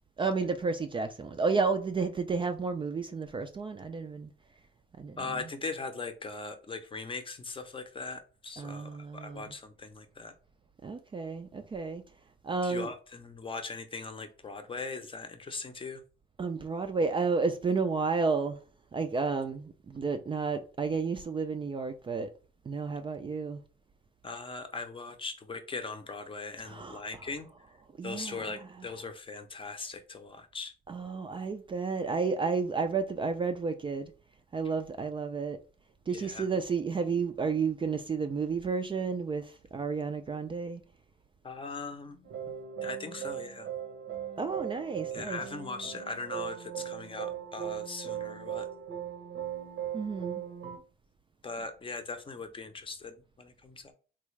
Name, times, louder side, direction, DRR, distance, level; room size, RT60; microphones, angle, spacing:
voice 1, 0.2-4.3 5.0-5.4 8.6-9.5 10.8-12.0 12.4-12.9 16.4-18.6 18.9-22.3 22.7-23.6 26.6-27.2 28.0-28.6 30.9-34.1 34.5-35.6 36.1-40.8 44.4-45.4 49.9-50.4, right 4 dB, 25° right, 0.3 m, -31 dB
voice 2, 5.2-10.3 12.6-16.0 24.2-27.5 28.0-30.7 36.1-36.5 41.4-42.3 42.8-43.7 45.1-48.7 51.4-53.9, left 4 dB, 25° left, 0.6 m, -40 dB
sound 1, 42.2-50.8, right 9 dB, 80° right, 0.8 m, -38 dB
3.4 x 2.4 x 3.1 m
cardioid pair, 90°, 20 cm